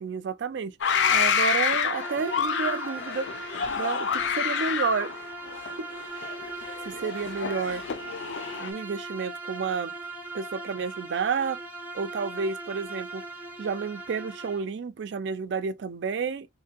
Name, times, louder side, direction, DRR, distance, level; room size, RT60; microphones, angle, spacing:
voice 1, 0.0-3.3 3.8-5.1 5.8-5.9 6.9-7.8 8.6-9.9 10.3-11.6 11.9-13.2 13.6-16.5, right 5 dB, 70° right, 0.4 m, -30 dB
sound 1, 0.8-8.7, left 7 dB, 80° left, 0.4 m, -28 dB
Bowed string instrument, 1.9-14.7, right 2 dB, 10° right, 0.5 m, -39 dB
2.6 x 2.6 x 2.8 m
head